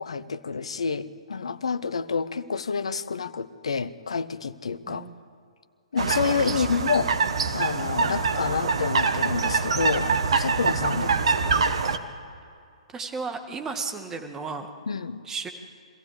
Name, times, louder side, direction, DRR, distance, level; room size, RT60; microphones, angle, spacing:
voice 1, 0.0-5.1 5.9-7.1 7.5-11.7 14.9-15.2, left 5 dB, 60° left, 16 dB, 0.9 m, -28 dB
sound 1, 6.0-12.0, right 4 dB, 60° right, 1.4 m, -25 dB
voice 2, 6.5-6.8 10.9-11.4 12.9-14.7 15.2-15.5, right 4 dB, 15° right, 6 dB, 1.8 m, -35 dB
24.5 x 15.5 x 8.4 m, 2.4 s
figure-of-eight pair, 125°, 3 cm